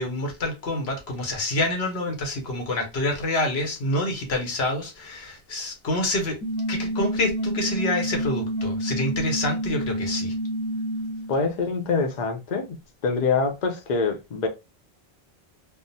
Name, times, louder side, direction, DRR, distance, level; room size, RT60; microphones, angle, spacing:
voice 1, 0.0-6.4 6.7-10.3, left 1 dB, 80° left, 1.2 m, -27 dB
sound 1, 6.4-11.4, equal, 25° left, 0.9 m, -28 dB
voice 2, 11.3-12.8 13.0-14.5, left 4 dB, 50° left, 0.7 m, -25 dB
3.5 x 2.1 x 2.6 m
omnidirectional pair, 1.0 m